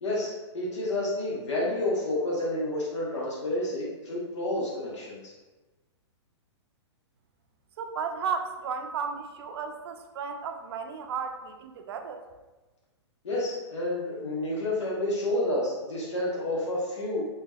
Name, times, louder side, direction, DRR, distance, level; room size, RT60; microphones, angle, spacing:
voice 1, 0.0-5.3 13.2-17.3, left 1 dB, 80° left, -5 dB, 1.0 m, -30 dB
voice 2, 7.8-12.3, right 6 dB, 60° right, 6 dB, 0.4 m, -34 dB
3.2 x 2.9 x 2.2 m, 1.2 s
hypercardioid pair, 135°, 15 cm